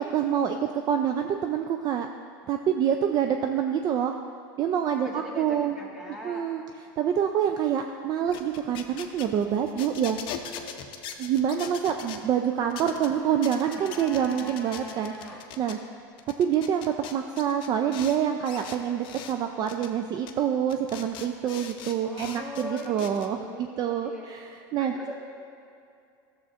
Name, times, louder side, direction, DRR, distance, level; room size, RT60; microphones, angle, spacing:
voice 1, 0.0-2.1 2.5-4.2 4.6-5.8 6.2-6.6 7.0-10.2 11.2-15.1 15.6-15.8 16.4-24.4 24.7-25.0, right 9 dB, 35° right, 5 dB, 0.4 m, -26 dB
voice 2, 5.0-6.5 22.0-24.3 24.8-25.1, left 1 dB, 5° right, -3 dB, 1.6 m, -40 dB
sound 1, 8.2-12.2 12.7-13.1 13.4-15.8 16.2-18.2 18.4-19.3 19.7-19.9 20.3-20.4 20.7-23.3, left 8 dB, 45° left, 0.6 m, -41 dB
sound 2, 13.0-15.5 15.7-15.8, left 2 dB, 15° left, 0.9 m, -44 dB
12.0 x 7.0 x 2.5 m, 2.5 s
supercardioid pair, 115°, 11 cm